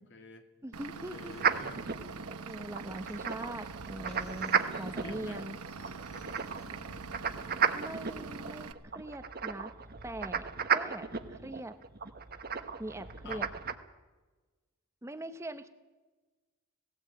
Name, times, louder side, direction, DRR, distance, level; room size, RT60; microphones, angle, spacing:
voice 1, 0.0-0.5 1.1-1.8 5.0-5.4 6.1-7.8 13.2-13.5, left 2 dB, 50° left, 6 dB, 2.1 m, -51 dB
voice 2, 0.6-1.3 2.4-5.6 7.7-9.7 10.0-11.7 12.8-13.5 15.0-15.7, right 1 dB, 10° right, 9 dB, 0.8 m, -42 dB
Vehicle / Engine, 0.7-8.7, right 5 dB, 85° right, 1.0 m, -44 dB
sound 1, 1.3-2.2 2.5-7.4, left 1 dB, 30° left, 7.7 m, -56 dB
sound 2, 1.4-13.7, right 6 dB, 45° right, 1.1 m, -34 dB
18.0 x 17.0 x 8.6 m, 1.3 s
head